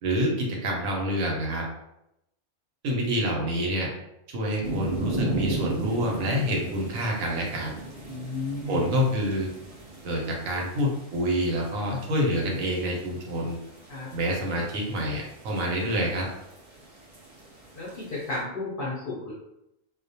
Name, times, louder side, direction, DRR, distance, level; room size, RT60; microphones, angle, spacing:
voice 1, 0.0-1.6 2.8-3.9 4.3-7.7 8.7-9.5 10.0-13.6 14.1-16.3, equal, 75° right, -1 dB, 1.0 m, -27 dB
sound 1, 4.6-18.4, right 2 dB, 50° right, 0.4 m, -37 dB
voice 2, 8.1-8.9 13.9-14.1 17.7-19.3, left 2 dB, 55° left, -6 dB, 0.6 m, -33 dB
2.4 x 2.1 x 2.7 m, 0.83 s
omnidirectional pair, 1.5 m